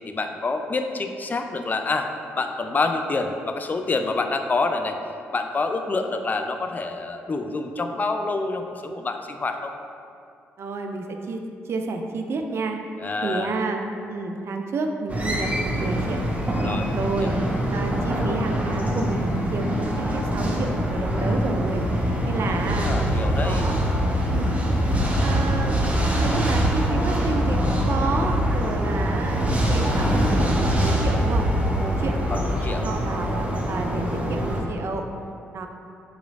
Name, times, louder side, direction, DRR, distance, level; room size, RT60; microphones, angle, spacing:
voice 1, 0.0-2.1 2.4-5.0 5.3-9.7 13.0-13.5 16.6-16.9 17.2-17.4 22.3-23.7 32.3-32.8, left 3 dB, 30° left, 6 dB, 0.3 m, -27 dB
voice 2, 10.6-12.8 13.2-13.8 14.1-16.2 17.0-17.4 17.7-23.8 24.3-24.6 25.2-25.8 26.1-31.5 31.8-32.5 32.8-33.3 33.7-35.0 35.5-35.7, right 3 dB, 50° right, 4 dB, 0.4 m, -30 dB
sound 1, 15.1-34.6, equal, 25° right, 0.8 m, -23 dB
4.7 x 3.0 x 2.5 m, 2.5 s
hypercardioid pair, 45°, 6 cm